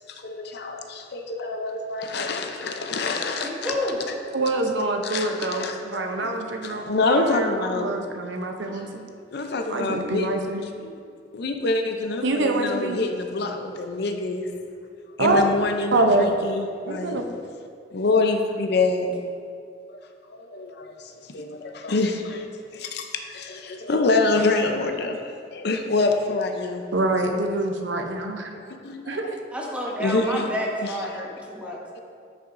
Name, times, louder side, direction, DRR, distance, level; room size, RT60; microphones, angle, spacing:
voice 1, 0.1-3.9 5.0-6.0 6.6-7.9 9.3-10.3 10.8-10.9 11.3-14.5 15.2-17.2 17.9-19.2 20.3-26.8 28.5-29.3 29.9-30.5 30.8-31.0 31.6-32.0, left 3 dB, 65° left, 5 dB, 0.6 m, -26 dB
voice 2, 3.4-4.0 29.5-31.8, equal, 5° right, -3 dB, 1.0 m, -29 dB
voice 3, 4.3-8.9 9.7-10.6 12.2-13.0 15.2-15.5 15.9-16.4 16.9-17.3 26.9-28.5 29.1-29.4, right 2 dB, 85° right, 3 dB, 0.7 m, -25 dB
9.9 x 5.7 x 2.6 m, 2.3 s
head